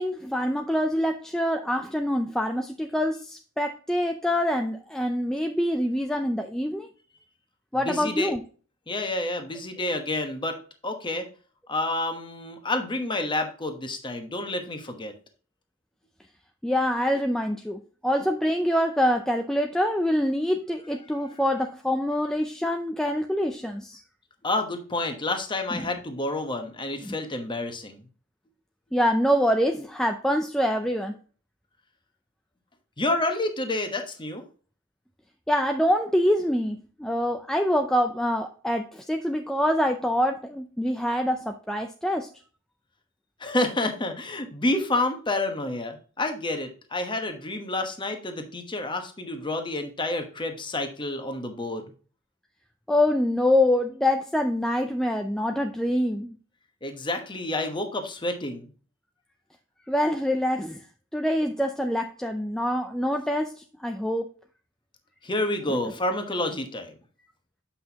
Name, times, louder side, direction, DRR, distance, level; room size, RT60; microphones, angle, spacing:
voice 1, 0.0-6.9 7.7-8.4 16.6-24.0 25.7-25.9 27.0-27.1 28.9-31.1 35.5-42.3 52.9-56.4 59.9-60.8 61.1-64.3 65.7-65.8, equal, 5° left, 4 dB, 0.4 m, -25 dB
voice 2, 7.8-8.3 8.9-10.6 10.8-11.3 11.7-15.1 24.4-28.0 33.0-34.4 43.4-51.8 56.8-58.7 65.2-66.9, left 2 dB, 25° left, 6 dB, 1.0 m, -29 dB
7.7 x 5.7 x 2.8 m, 0.40 s
head